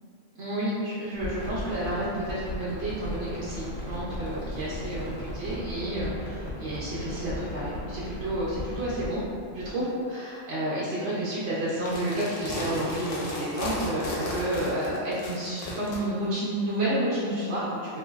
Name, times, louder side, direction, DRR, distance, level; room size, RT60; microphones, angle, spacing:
voice 1, 0.3-9.2 9.5-17.8, right 1 dB, 60° right, -10 dB, 0.8 m, -30 dB
sound 1, 1.1-9.7, left 1 dB, 55° left, 0.6 m, -36 dB
sound 2, 11.7-16.0, left 1 dB, 85° left, 1.0 m, -34 dB
2.9 x 2.6 x 2.3 m, 2.2 s
omnidirectional pair, 1.3 m